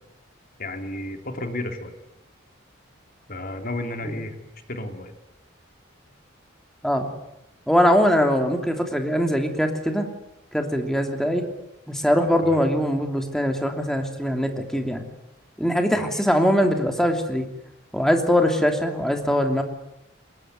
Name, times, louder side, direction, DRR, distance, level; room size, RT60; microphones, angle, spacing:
voice 1, 0.6-1.9 3.3-4.3 4.7-5.1 12.4-12.6 15.9-16.2, left 1 dB, 50° left, 5 dB, 3.3 m, -32 dB
voice 2, 7.7-10.1 10.5-11.4 11.9-15.0 15.6-17.5 17.9-19.6, equal, 5° left, 4 dB, 2.9 m, -22 dB
24.0 x 21.0 x 9.5 m, 0.87 s
head